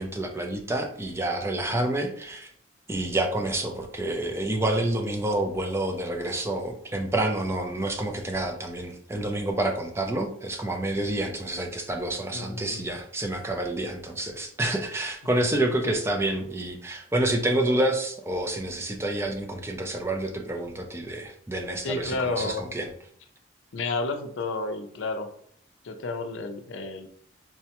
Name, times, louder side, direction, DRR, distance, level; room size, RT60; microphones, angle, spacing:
voice 1, 0.0-2.5 2.9-22.9, right 1 dB, 15° right, 3 dB, 0.4 m, -28 dB
voice 2, 12.3-12.8 21.8-22.7 23.7-25.3 25.8-27.1, left 3 dB, 80° left, 7 dB, 0.5 m, -31 dB
4.6 x 2.1 x 2.8 m, 0.63 s
head